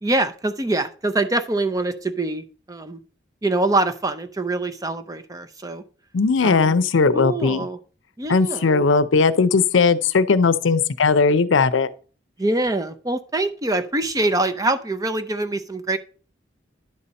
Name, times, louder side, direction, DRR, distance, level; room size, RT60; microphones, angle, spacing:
voice 1, 0.0-3.0 3.4-5.8 6.4-6.7 7.1-7.8 8.2-8.8 12.4-16.0, right 2 dB, 20° right, 0.5 m, -24 dB
voice 2, 6.1-7.7 8.3-11.9, left 4 dB, 90° left, 0.6 m, -18 dB
10.5 x 4.2 x 5.2 m
head